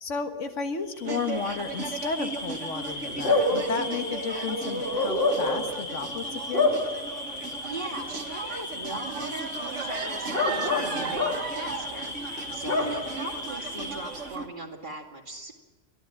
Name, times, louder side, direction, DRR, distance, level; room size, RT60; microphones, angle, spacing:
voice 1, 0.0-6.8, left 5 dB, 70° left, 6 dB, 1.8 m, -33 dB
Bark / Cricket, 1.0-14.3, left 2 dB, 45° left, 2.9 m, -30 dB
sound 1, 1.0-14.5, right 4 dB, 70° right, 1.8 m, -37 dB
voice 2, 7.6-12.2 12.5-15.5, right 2 dB, 40° right, 2 dB, 2.6 m, -39 dB
30.0 x 12.0 x 7.6 m, 1.2 s
omnidirectional pair, 1.3 m